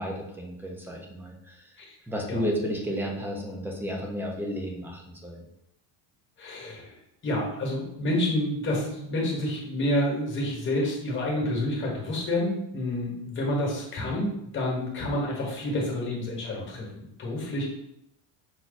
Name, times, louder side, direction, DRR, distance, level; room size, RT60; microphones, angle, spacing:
voice 1, 0.0-1.6 2.1-5.4, equal, 5° right, 0 dB, 0.4 m, -32 dB
voice 2, 6.4-6.9 7.2-17.7, left 1 dB, 25° left, -2 dB, 1.3 m, -29 dB
5.8 x 2.2 x 4.0 m, 0.80 s
cardioid pair, 165°, 44 cm